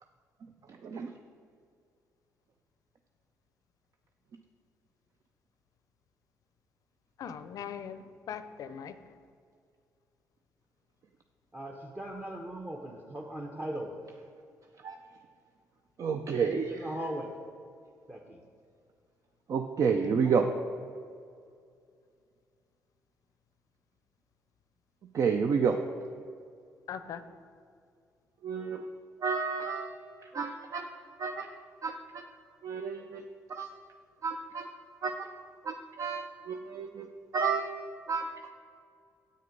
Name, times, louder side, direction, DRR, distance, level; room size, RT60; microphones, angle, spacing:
voice 1, 0.6-1.2 14.8-15.0 16.0-17.0 19.5-20.5 25.1-25.8 28.4-28.9 29.2-30.9 31.2-31.5 31.8-32.3 32.6-33.7 34.2-34.7 35.0-35.3 35.6-37.7 38.1-38.3, right 5 dB, 55° right, 0.5 m, -31 dB
voice 2, 7.2-9.0 26.9-27.2, left 8 dB, 65° left, 0.5 m, -40 dB
voice 3, 11.5-13.9 16.5-17.3 18.1-18.4 19.8-20.3, right 1 dB, 25° right, 0.9 m, -39 dB
7.8 x 6.5 x 5.2 m
supercardioid pair, 65°, 7 cm